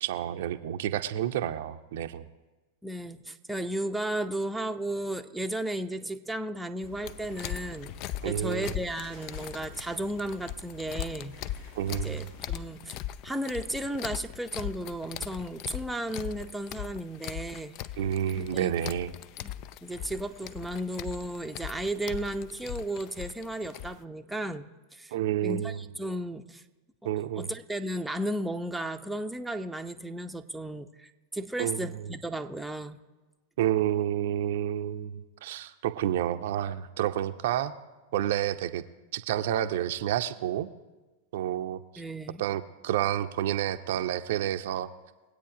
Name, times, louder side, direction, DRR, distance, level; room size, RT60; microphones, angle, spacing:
voice 1, 0.0-2.3 8.2-8.7 11.7-12.2 18.0-19.1 25.1-25.8 27.0-27.5 31.6-32.1 33.6-37.8 38.1-38.8 39.1-40.7 41.3-41.8 42.4-44.9, right 11 dB, 55° right, 8 dB, 0.6 m, -29 dB
voice 2, 2.8-7.9 8.2-11.4 11.9-12.9 13.2-17.7 18.4-18.7 19.4-19.5 19.8-25.1 25.4-26.6 27.0-33.0 42.0-42.4, right 1 dB, 5° right, 5 dB, 0.7 m, -34 dB
sound 1, 6.8-12.7, left 3 dB, 65° left, 4.5 m, -49 dB
sound 2, 7.0-24.0, left 12 dB, 40° left, 0.4 m, -40 dB
21.5 x 8.5 x 4.9 m, 1.2 s
figure-of-eight pair, 90°, 0 cm